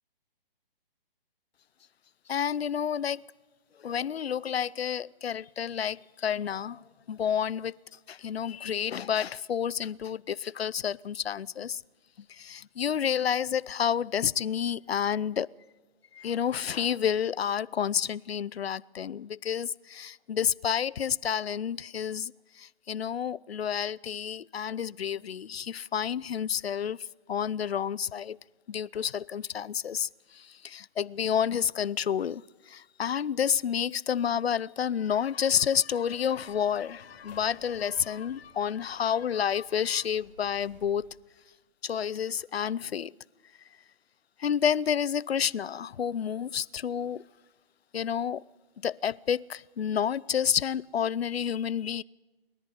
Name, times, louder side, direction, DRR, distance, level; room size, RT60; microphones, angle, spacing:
voice 1, 2.3-3.2 3.8-6.8 7.1-7.7 8.1-11.8 12.4-15.5 16.2-22.3 22.6-27.0 27.3-28.4 28.7-30.1 30.6-32.4 32.7-41.1 41.8-43.1 44.4-47.2 47.9-48.4 48.8-52.0, left 8 dB, 85° left, 0.7 m, -29 dB
sound 1, 36.1-41.1, left 4 dB, 45° left, 6.6 m, -56 dB
28.0 x 11.0 x 9.8 m
hypercardioid pair, 150°, 30 cm